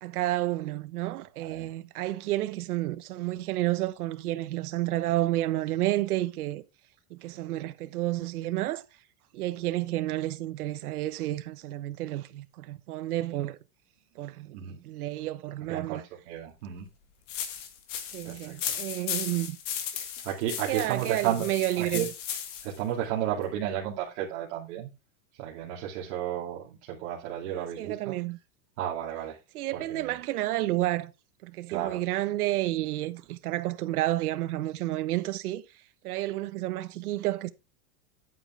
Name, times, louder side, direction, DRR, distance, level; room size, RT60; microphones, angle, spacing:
voice 1, 0.0-6.6 7.1-8.8 9.3-13.6 14.2-16.0 18.1-19.6 19.9-20.1 20.7-22.1 27.5-28.4 29.5-31.1 31.4-35.6 36.0-37.5, right 15 dB, 85° right, 1.1 m, -30 dB
voice 2, 15.7-16.0 16.3-16.9 18.2-18.8 20.2-22.1 22.6-24.9 25.3-28.1 28.8-29.4 29.7-30.2 31.7-32.0, right 11 dB, 50° right, 2.5 m, -33 dB
sound 1, 17.3-22.8, left 9 dB, 55° left, 2.1 m, -36 dB
10.0 x 8.8 x 3.3 m
supercardioid pair, 180°, 43 cm